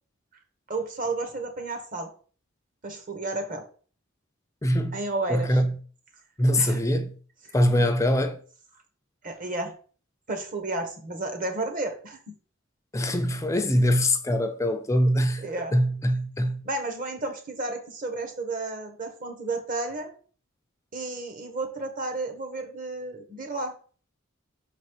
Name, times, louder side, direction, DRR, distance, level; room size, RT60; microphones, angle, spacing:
voice 1, 0.7-2.1 2.8-3.6 4.9-5.6 6.6-6.8 7.4-7.9 9.2-9.7 10.3-12.3 15.4-15.7 16.6-20.1 20.9-23.7, right 2 dB, 40° right, 1.3 m, -32 dB
voice 2, 4.6-5.0 5.3-5.8 6.4-7.1 7.5-8.4 12.9-15.4 15.7-16.6, equal, 15° left, 0.4 m, -23 dB
5.9 x 4.1 x 4.7 m
head